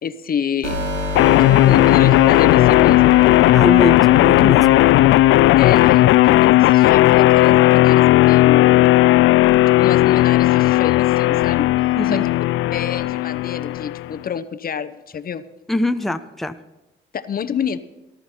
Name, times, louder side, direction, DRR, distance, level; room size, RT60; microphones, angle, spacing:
voice 1, 0.0-0.8 1.5-3.1 5.6-8.9 9.8-11.7 12.0-12.2 12.7-15.4 17.1-17.8, left 7 dB, 45° left, 12 dB, 0.9 m, -28 dB
sound 1, 0.6-5.6, left 2 dB, 85° right, 4.3 m, -27 dB
sound 2, 1.2-14.1, left 16 dB, 85° left, 0.4 m, -14 dB
voice 2, 3.5-4.7 12.0-12.3 15.7-16.6, left 1 dB, ahead, 8 dB, 0.8 m, -22 dB
18.5 x 12.5 x 4.4 m, 1.0 s
cardioid pair, 90°, 20 cm